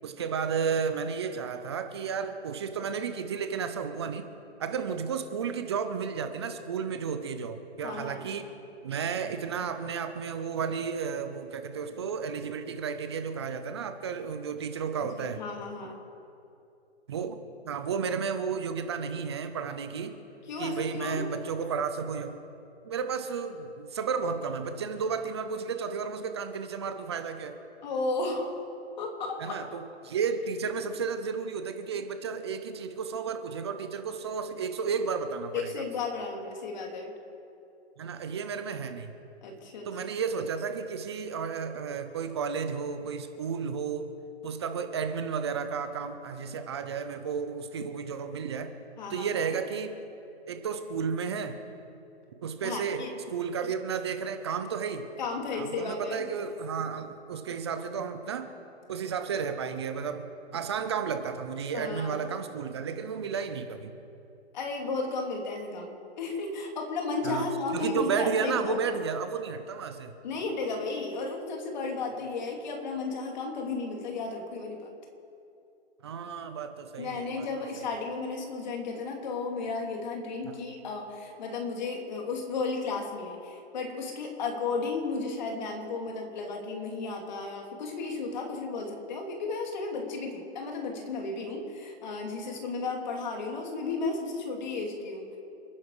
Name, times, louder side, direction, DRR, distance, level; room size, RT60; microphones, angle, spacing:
voice 1, 0.0-4.2 4.6-8.5 8.8-15.4 17.1-17.4 17.7-20.1 20.6-22.4 22.8-27.6 29.4-35.8 38.0-39.1 39.8-44.1 44.4-48.7 49.1-49.9 50.5-51.6 52.4-53.0 53.3-55.1 55.5-58.5 58.9-60.2 60.5-63.9 67.2-67.5 67.7-70.1 76.0-77.5 77.8-77.9 80.4-80.6, right 6 dB, 25° right, 8 dB, 0.7 m, -32 dB
voice 2, 7.8-8.2 15.2-16.0 20.5-21.3 27.8-28.5 29.0-29.6 35.5-37.1 39.4-39.9 49.0-49.5 52.6-53.2 55.2-56.2 61.7-62.3 64.5-69.0 70.2-74.9 77.0-95.3, left 3 dB, 40° left, 1 dB, 3.0 m, -34 dB
29.0 x 10.0 x 4.9 m, 2.7 s
hypercardioid pair, 165°, 34 cm